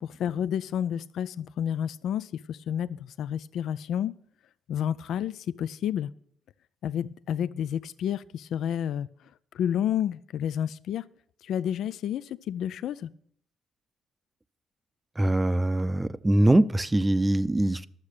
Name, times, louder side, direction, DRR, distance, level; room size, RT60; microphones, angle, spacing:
voice 1, 0.0-4.1 4.7-6.1 6.8-9.1 9.5-11.0 11.4-13.1, left 9 dB, 75° left, 0.4 m, -30 dB
voice 2, 15.2-17.8, right 1 dB, 15° right, 0.6 m, -23 dB
12.0 x 7.3 x 6.6 m
cardioid pair, 90°, 0 cm